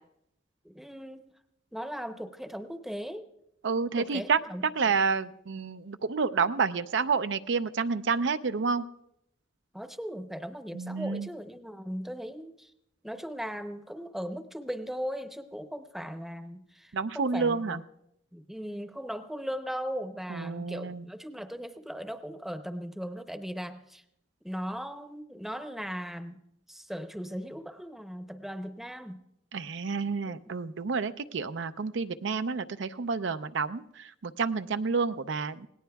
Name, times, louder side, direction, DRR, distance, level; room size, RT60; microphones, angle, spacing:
voice 1, 0.6-1.3 1.7-3.3 4.0-5.0 9.7-12.7 13.0-17.8 18.3-24.0 24.4-26.4 26.7-29.2 30.3-30.4, equal, ahead, 8 dB, 0.7 m, -38 dB
voice 2, 3.6-4.4 4.8-8.8 10.7-11.3 16.9-17.8 20.3-21.0 29.5-33.8 34.2-35.7, right 5 dB, 80° right, 10 dB, 0.5 m, -29 dB
27.0 x 18.0 x 2.3 m, 0.79 s
head